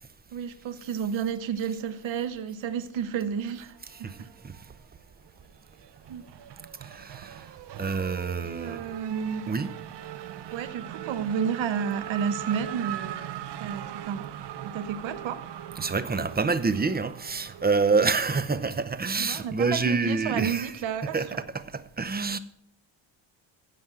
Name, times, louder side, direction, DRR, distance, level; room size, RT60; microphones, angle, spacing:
voice 1, 0.3-3.7 4.0-4.3 6.1-6.2 8.4-9.4 10.5-14.3 14.6-15.4 19.2-21.4, right 7 dB, 75° right, 1.2 m, -31 dB
Race car auto racing / Accelerating revving vroom, 3.9-5.0 5.3-19.0, right 11 dB, 60° right, 0.9 m, -40 dB
voice 2, 6.8-7.5 7.8-8.8 9.5-9.7 15.8-20.7 21.1-21.3 21.5-22.4, right 4 dB, 20° right, 0.8 m, -27 dB
15.5 x 5.3 x 7.4 m
cardioid pair, 125°, 46 cm